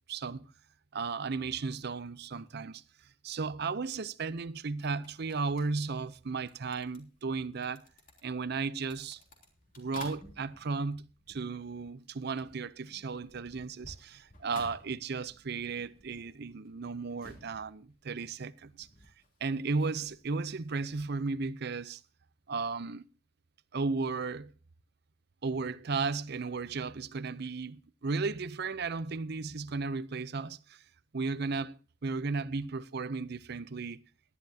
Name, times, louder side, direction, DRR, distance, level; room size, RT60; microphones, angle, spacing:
voice 1, 0.1-0.5 0.9-2.8 3.2-7.8 8.2-9.2 9.8-18.9 19.4-22.0 22.5-23.0 23.7-24.5 25.4-30.8 31.1-34.0, right 4 dB, 50° right, 0.6 m, -35 dB
sound 1, 4.8-12.1 12.4-21.1, left 2 dB, 40° left, 3.2 m, -55 dB
18.0 x 11.0 x 2.8 m
head